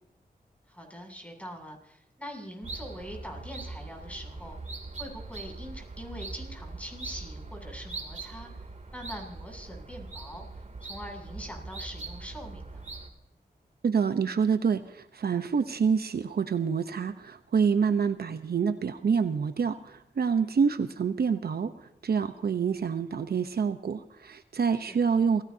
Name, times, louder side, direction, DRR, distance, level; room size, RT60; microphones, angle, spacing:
voice 1, 0.7-4.6 5.0-8.6 8.9-12.9 24.7-25.2, equal, 10° left, 2 dB, 7.6 m, -43 dB
sound 1, 2.6-13.1, right 3 dB, 45° right, 2.9 m, -41 dB
voice 2, 13.8-25.4, right 6 dB, 75° right, 9 dB, 0.9 m, -27 dB
28.0 x 17.5 x 2.8 m, 0.77 s
cardioid pair, 60°, 16 cm